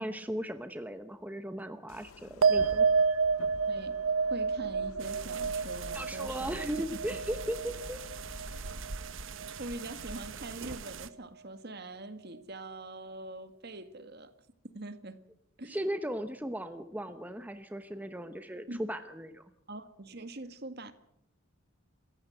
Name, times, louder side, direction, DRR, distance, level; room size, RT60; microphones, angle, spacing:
voice 1, 0.0-2.9 5.9-8.0 15.6-19.4, equal, 10° right, 0.9 m, -37 dB
sound 1, 1.9-8.9, left 3 dB, 90° left, 0.8 m, -49 dB
sound 2, 2.4-9.1 9.4-10.0, right 5 dB, 90° right, 0.9 m, -30 dB
voice 2, 3.7-7.2 9.6-14.3 14.7-15.2 15.6-15.8 18.7-18.8 19.7-20.9, right 2 dB, 50° right, 1.8 m, -43 dB
sound 3, 5.0-11.1, right 5 dB, 65° right, 1.1 m, -43 dB
27.0 x 15.0 x 7.9 m
head